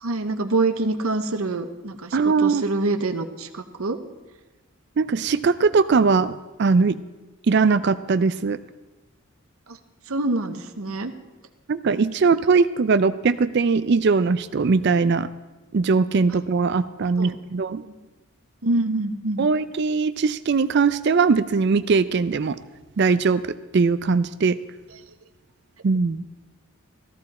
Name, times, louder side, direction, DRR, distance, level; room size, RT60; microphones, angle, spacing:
voice 1, 0.0-4.0 9.7-9.8 10.1-11.1 17.2-17.4 17.8-18.0 18.6-19.4, right 2 dB, 75° right, 8 dB, 0.9 m, -26 dB
voice 2, 2.1-2.6 5.0-7.0 7.5-8.6 11.7-15.3 15.7-17.8 19.4-22.6 23.0-24.6 25.8-26.2, right 4 dB, 50° right, 14 dB, 0.4 m, -20 dB
14.5 x 14.0 x 4.2 m, 1.2 s
head